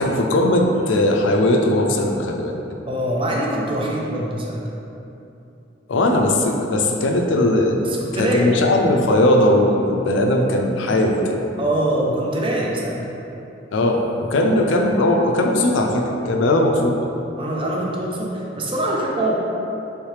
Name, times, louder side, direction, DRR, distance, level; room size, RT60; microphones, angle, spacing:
voice 1, 0.0-2.5 5.9-7.8 8.2-11.4 13.7-17.0, left 1 dB, 80° left, 2 dB, 0.4 m, -18 dB
voice 2, 2.9-4.6 7.8-8.5 11.6-13.0 16.4-16.7 17.4-19.3, right 1 dB, 30° right, -2 dB, 0.5 m, -24 dB
3.2 x 3.1 x 3.2 m, 2.8 s
head